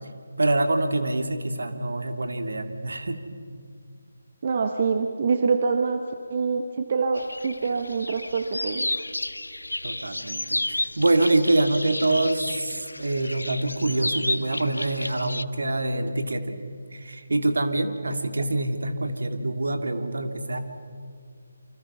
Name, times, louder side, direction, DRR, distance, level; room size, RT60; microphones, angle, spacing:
voice 1, 0.4-3.2 9.8-16.6 16.9-20.6, right 2 dB, 60° right, 7 dB, 2.2 m, -25 dB
voice 2, 4.4-8.9 18.4-18.5, right 5 dB, 40° right, 6 dB, 1.2 m, -25 dB
sound 1, 7.2-15.4, left 1 dB, 75° left, 0.7 m, -32 dB
28.0 x 25.0 x 5.6 m, 2.2 s
figure-of-eight pair, 150°, 0 cm